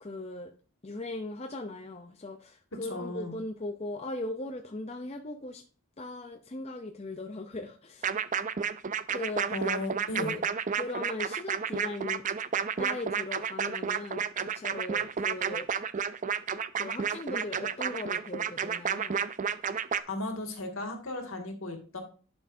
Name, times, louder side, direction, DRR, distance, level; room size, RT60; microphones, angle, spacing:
voice 1, 0.0-0.5 0.8-5.6 6.0-8.1 9.1-9.5 10.2-10.4 10.7-12.2 12.8-15.7 16.7-19.2, left 2 dB, 30° left, 4 dB, 0.6 m, -38 dB
voice 2, 2.8-3.4 9.5-10.4 20.1-22.0, left 2 dB, 65° left, 3 dB, 2.1 m, -35 dB
sound 1, 8.0-20.0, right 7 dB, 35° right, 0.4 m, -31 dB
11.0 x 6.2 x 2.7 m, 0.39 s
head